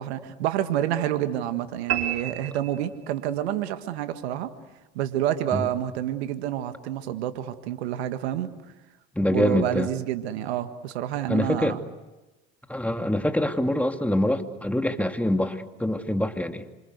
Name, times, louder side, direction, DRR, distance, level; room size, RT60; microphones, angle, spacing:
voice 1, 0.0-4.5 5.0-8.5 9.3-11.8, right 11 dB, 85° right, 9 dB, 1.8 m, -28 dB
sound 1, 1.9-3.4, right 11 dB, 50° right, 4.6 m, -31 dB
voice 2, 9.2-9.9 11.3-11.8 12.7-16.6, left 1 dB, 5° left, 6 dB, 2.6 m, -25 dB
27.5 x 26.5 x 8.2 m, 1.1 s
hypercardioid pair, 75°, 31 cm